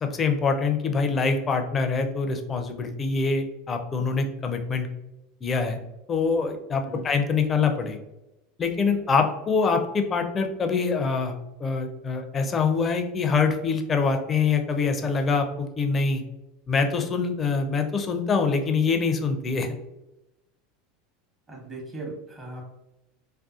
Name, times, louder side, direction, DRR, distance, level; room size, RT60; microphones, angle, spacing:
voice 1, 0.0-4.9 5.4-5.8 6.1-8.0 8.6-16.2 16.7-19.7, left 5 dB, 30° left, 5 dB, 0.4 m, -25 dB
voice 2, 21.5-22.6, right 2 dB, 30° right, -1 dB, 1.0 m, -38 dB
2.6 x 2.2 x 2.4 m, 0.92 s
hypercardioid pair, 95°, 0 cm